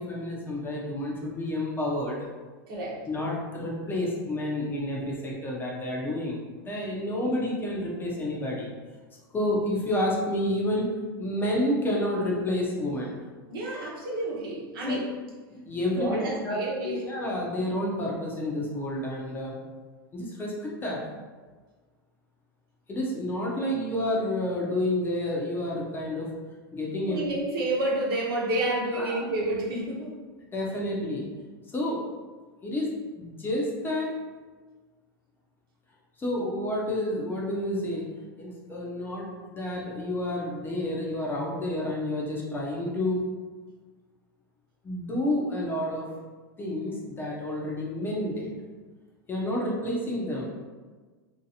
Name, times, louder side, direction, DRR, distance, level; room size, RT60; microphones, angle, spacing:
voice 1, 0.0-2.2 3.1-8.7 9.3-10.9 11.2-13.1 14.9-15.0 15.5-16.2 16.4-16.6 16.8-19.6 20.1-21.0 22.9-26.3 26.7-27.2 28.9-29.2 30.5-31.2 31.7-32.0 32.6-32.9 33.2-34.1 36.2-38.1 38.4-43.2 44.8-46.1 46.6-48.5 49.3-50.5, left 1 dB, 15° left, -3 dB, 0.7 m, -29 dB
voice 2, 2.7-3.0 13.5-15.1 16.0-17.0 27.1-30.2, right 1 dB, 70° right, -3 dB, 1.0 m, -29 dB
3.0 x 2.7 x 2.8 m, 1.4 s
hypercardioid pair, 120°, 12 cm